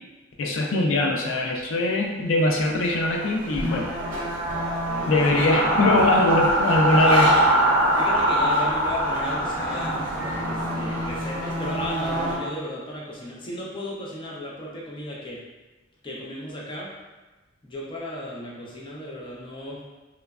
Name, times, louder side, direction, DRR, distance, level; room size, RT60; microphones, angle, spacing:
voice 1, 0.4-3.9 5.1-7.3, left 2 dB, 90° left, 0 dB, 0.4 m, -22 dB
sound 1, 2.1-12.4, equal, 45° right, 0.7 m, -35 dB
sound 2, 3.6-12.5, right 1 dB, 80° right, 0.5 m, -23 dB
voice 2, 4.9-5.2 7.0-7.4 8.0-10.0 10.4-15.4 16.0-16.9 17.6-19.8, left 1 dB, 25° left, -4 dB, 0.5 m, -35 dB
3.0 x 2.2 x 2.3 m, 1.2 s
head